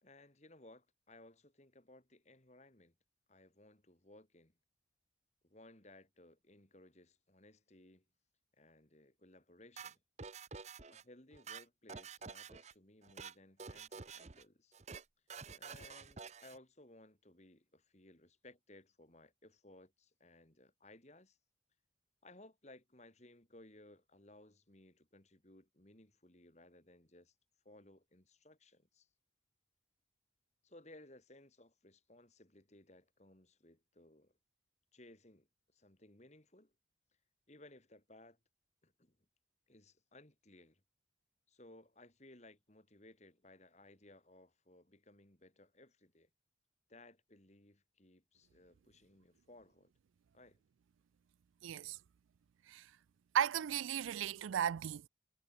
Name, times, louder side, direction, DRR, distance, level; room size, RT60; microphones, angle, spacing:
voice 1, 0.0-2.9 3.3-4.5 5.4-8.0 8.6-10.0 10.7-14.7 15.5-21.4 22.2-27.3 27.6-29.1 30.6-34.4 34.9-35.5 35.7-36.7 37.5-38.4 38.8-39.2 39.7-40.8 41.5-46.3 46.9-49.9 50.3-50.6, left 1 dB, 35° left, 2.8 m, -61 dB
sound 1, 9.8-11.0 11.3-12.7 13.0-13.3 13.6-14.4 14.7-15.0 15.3-16.6, right 5 dB, 35° right, 0.8 m, -49 dB
voice 2, 51.6-52.0 52.7-52.8 53.3-55.1, right 9 dB, 85° right, 0.4 m, -35 dB
head